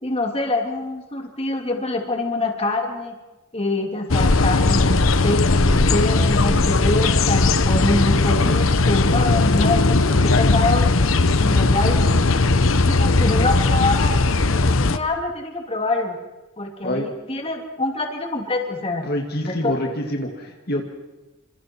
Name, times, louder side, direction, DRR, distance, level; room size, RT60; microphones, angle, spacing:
voice 1, 0.0-3.2 3.5-10.9 11.3-12.3 12.9-14.2 14.5-16.2 16.6-19.1 19.4-19.7, left 2 dB, 30° left, 3 dB, 2.9 m, -25 dB
sound 1, 4.1-15.0, left 3 dB, 80° left, 1.1 m, -18 dB
voice 2, 19.0-20.8, left 1 dB, 50° left, 2 dB, 2.5 m, -26 dB
28.5 x 26.5 x 4.6 m, 1.1 s
head